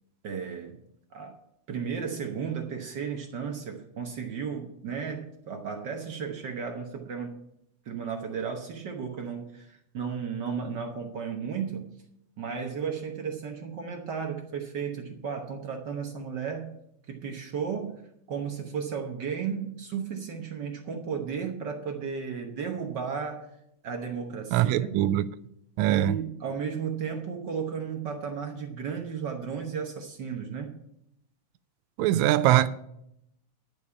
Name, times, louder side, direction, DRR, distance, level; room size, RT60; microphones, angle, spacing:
voice 1, 0.2-0.8 1.1-1.4 1.7-7.3 7.8-11.9 12.4-16.7 17.1-18.0 18.3-23.5 23.8-25.0 25.9-30.8, right 6 dB, 65° right, 1.0 m, -34 dB
voice 2, 24.5-25.2 25.8-26.2 32.0-32.7, right 13 dB, 80° right, 1.8 m, -22 dB
11.0 x 5.3 x 8.3 m
omnidirectional pair, 3.4 m